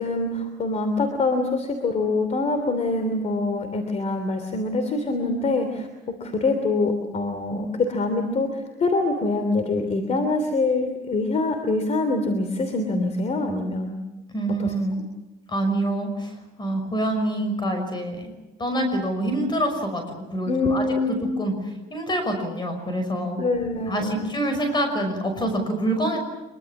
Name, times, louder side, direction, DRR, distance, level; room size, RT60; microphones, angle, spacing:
voice 1, 0.0-5.9 6.2-14.0 14.6-14.7 20.5-21.3 23.4-24.3, left 2 dB, 40° left, 7 dB, 3.1 m, -24 dB
voice 2, 14.3-15.0 15.5-18.3 18.6-21.5 21.9-23.4 23.9-26.2, right 1 dB, 25° left, 6 dB, 5.9 m, -26 dB
24.5 x 23.5 x 7.3 m, 1.0 s
cardioid pair, 110°, 17 cm